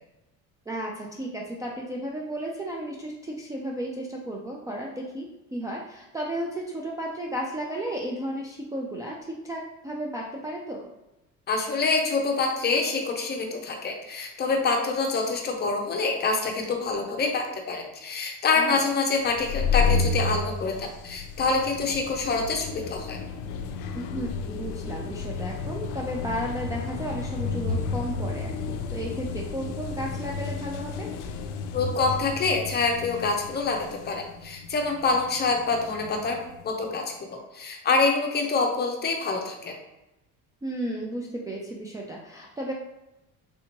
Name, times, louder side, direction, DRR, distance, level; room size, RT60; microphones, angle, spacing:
voice 1, 0.7-10.9 18.6-18.8 23.9-31.1 40.6-42.7, right 1 dB, 10° right, -4 dB, 0.3 m, -34 dB
voice 2, 11.5-23.2 31.7-33.8 34.0-36.4 36.6-37.0 37.5-39.7, left 4 dB, 30° left, 2 dB, 0.6 m, -26 dB
sound 1, 19.3-36.7, left 4 dB, 75° left, 0.5 m, -32 dB
3.4 x 2.8 x 2.8 m, 0.96 s
cardioid pair, 120°, 32 cm